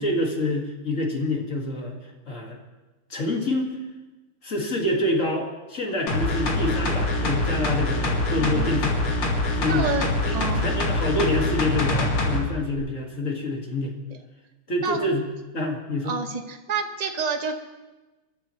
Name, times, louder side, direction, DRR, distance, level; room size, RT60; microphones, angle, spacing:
voice 1, 0.0-2.6 3.1-3.8 4.4-9.0 9.6-9.9 10.2-13.9 14.7-15.3 15.5-16.2, left 1 dB, 35° left, 0 dB, 2.2 m, -27 dB
sound 1, 6.1-12.4 12.8-12.9, left 2 dB, 75° left, 2.8 m, -24 dB
voice 2, 8.4-8.9 9.7-10.1 10.3-10.7 14.8-15.1 16.0-17.5, right 5 dB, 35° right, 4 dB, 0.6 m, -29 dB
27.5 x 12.0 x 3.1 m, 1.1 s
omnidirectional pair, 2.4 m